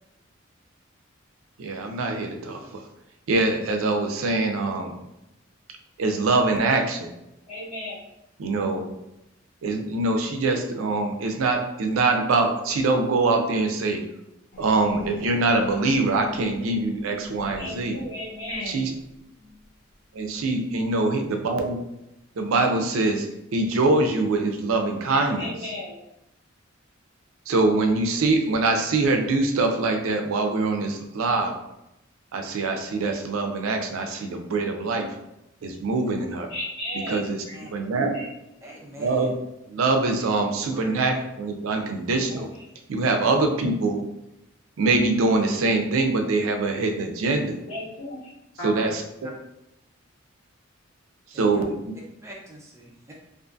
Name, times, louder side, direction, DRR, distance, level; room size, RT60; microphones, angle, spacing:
voice 1, 1.6-2.8 3.3-5.0 6.0-7.1 8.4-8.8 9.6-14.0 14.6-18.0 18.7-18.9 20.1-21.8 22.4-23.3 23.5-25.5 27.5-31.5 32.3-35.1 35.6-36.5 37.1-37.4 37.7-38.1 39.0-39.4 39.7-42.5 42.9-44.0 44.8-47.6 48.6-49.0 51.3-51.7, right 3 dB, 85° right, 4 dB, 0.4 m, -23 dB
voice 2, 7.5-8.0 17.6-18.9 25.4-26.0 36.5-37.6 38.1-38.3 42.3-42.4 47.6-48.2 48.6-48.9, left 1 dB, 70° left, -9 dB, 1.4 m, -34 dB
sound 1, 14.5-19.7 20.4-20.6, left 3 dB, 45° left, 0.5 m, -42 dB
voice 3, 38.6-39.3 40.7-41.2 48.7-48.9 51.3-51.6 52.2-53.1, equal, 15° right, -2 dB, 0.4 m, -43 dB
2.5 x 2.5 x 2.3 m, 0.87 s
head